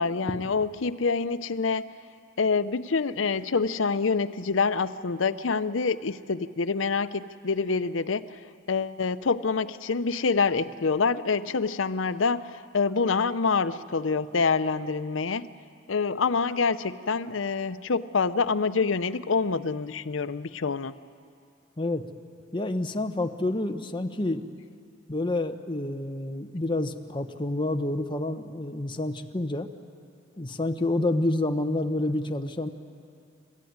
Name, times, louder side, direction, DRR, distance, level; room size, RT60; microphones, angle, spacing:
voice 1, 0.0-1.8 2.4-8.4 8.7-15.5 15.9-21.0, left 4 dB, 85° left, 13 dB, 0.7 m, -26 dB
voice 2, 22.5-24.4 25.1-29.7 30.4-32.7, left 2 dB, 25° left, 6 dB, 1.0 m, -28 dB
29.0 x 14.5 x 9.6 m, 2.3 s
head